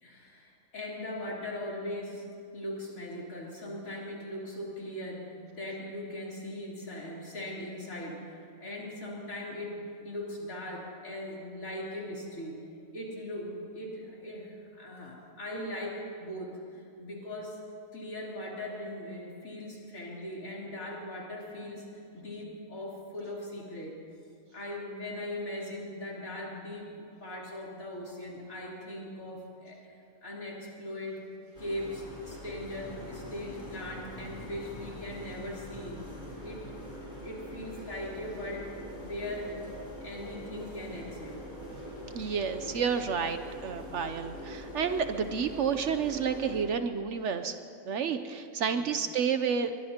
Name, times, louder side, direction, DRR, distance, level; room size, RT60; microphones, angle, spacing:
voice 1, 0.0-12.6 12.9-17.6 17.9-24.0 24.5-29.8 30.2-31.2 31.6-36.0 36.4-36.6 37.2-38.7 39.0-39.6 40.0-41.4 48.7-48.9, left 1 dB, 70° left, -5 dB, 3.9 m, -39 dB
sound 1, 31.5-46.6, equal, 30° left, 4.2 m, -43 dB
voice 2, 42.1-47.6 47.9-49.8, right 6 dB, 60° right, 9 dB, 0.9 m, -30 dB
22.5 x 22.0 x 2.9 m, 2.5 s
omnidirectional pair, 1.5 m